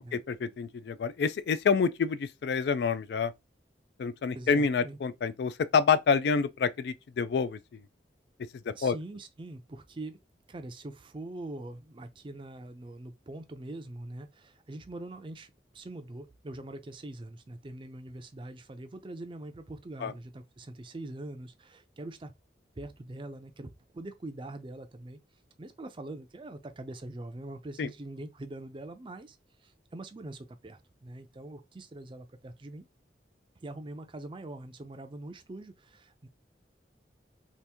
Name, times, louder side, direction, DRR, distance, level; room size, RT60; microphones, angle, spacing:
voice 1, 0.1-3.3 4.0-7.6 8.8-9.0 20.0-20.1 27.8-27.9, left 5 dB, 65° left, 0.3 m, -27 dB
voice 2, 4.4-5.0 8.7-10.2 10.5-22.3 22.8-25.2 25.6-32.8 33.6-36.3, right 2 dB, 30° right, 0.4 m, -43 dB
2.9 x 2.5 x 3.4 m
head